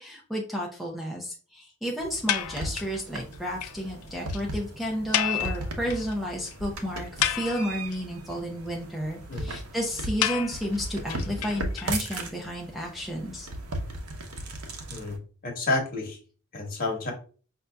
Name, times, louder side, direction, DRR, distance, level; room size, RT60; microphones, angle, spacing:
voice 1, 0.0-13.5, equal, ahead, -2 dB, 0.6 m, -32 dB
sound 1, 2.0-15.2, right 1 dB, 90° right, 0.7 m, -37 dB
sound 2, 2.3-3.0 3.3-3.4 3.6-3.7 4.0-4.1 4.3-4.4 5.1-6.1 6.5-6.6 7.0-7.9 10.2-12.2, left 11 dB, 90° left, 0.4 m, -30 dB
voice 2, 15.4-16.2 16.5-17.1, left 3 dB, 40° left, 1 dB, 1.2 m, -29 dB
5.3 x 2.7 x 2.3 m, 0.39 s
head